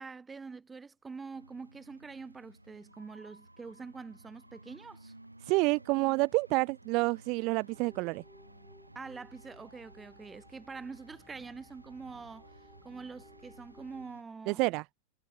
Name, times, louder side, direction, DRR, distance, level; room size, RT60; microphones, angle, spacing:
voice 1, 0.0-5.1 9.0-12.5 12.8-14.7, right 4 dB, 15° right, 1.8 m, -45 dB
sound 1, 1.3-14.2, right 1 dB, 85° right, 3.8 m, -56 dB
voice 2, 5.4-8.2 14.5-14.8, right 26 dB, 40° right, 0.5 m, -28 dB
sound 2, 7.7-14.0, left 1 dB, 5° left, 4.7 m, -60 dB
figure-of-eight pair, 90°, 0 cm